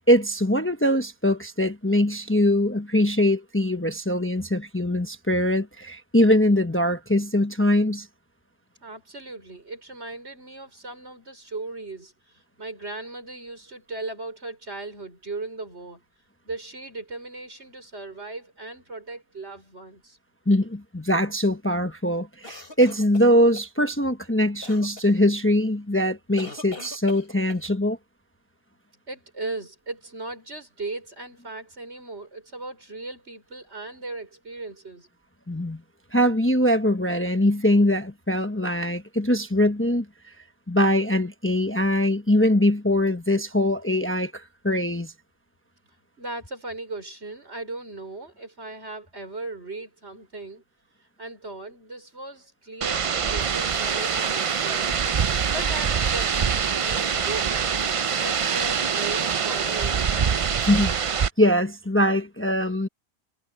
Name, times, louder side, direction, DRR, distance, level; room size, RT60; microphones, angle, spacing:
voice 1, 0.1-8.1 20.5-28.0 35.5-35.8 36.1-40.1 40.7-45.1 60.6-60.9 61.4-62.9, left 1 dB, 10° left, 1.0 m, -22 dB
voice 2, 8.8-16.0 16.4-20.2 29.1-35.1 46.2-50.6 51.2-55.0 55.5-57.7 58.2-60.0, right 2 dB, 75° right, 5.8 m, -37 dB
sound 1, 22.4-23.7 24.6-25.1 26.4-27.7, left 3 dB, 55° left, 5.9 m, -40 dB
sound 2, 52.8-61.3, right 7 dB, 45° right, 0.4 m, -24 dB
omnidirectional pair, 1.1 m